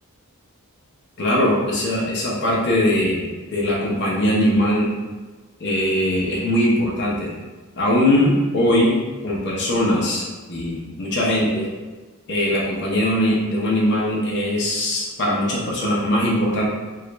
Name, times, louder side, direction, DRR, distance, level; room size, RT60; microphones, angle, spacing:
voice 1, 1.2-4.9 5.6-7.3 7.8-11.7 12.3-16.7, left 1 dB, 55° left, -5 dB, 0.6 m, -21 dB
2.9 x 2.4 x 3.2 m, 1.3 s
head